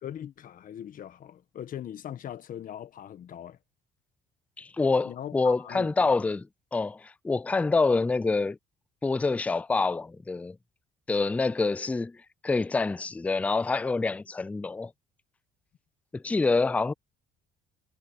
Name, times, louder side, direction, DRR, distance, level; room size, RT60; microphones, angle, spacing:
voice 1, 0.0-3.6 5.0-5.9, left 10 dB, 55° left, 1.4 m, -40 dB
voice 2, 4.6-6.5 6.7-8.6 9.0-10.6 11.1-14.9 16.1-16.9, left 3 dB, 10° left, 0.3 m, -26 dB
cardioid pair, 110°, 17 cm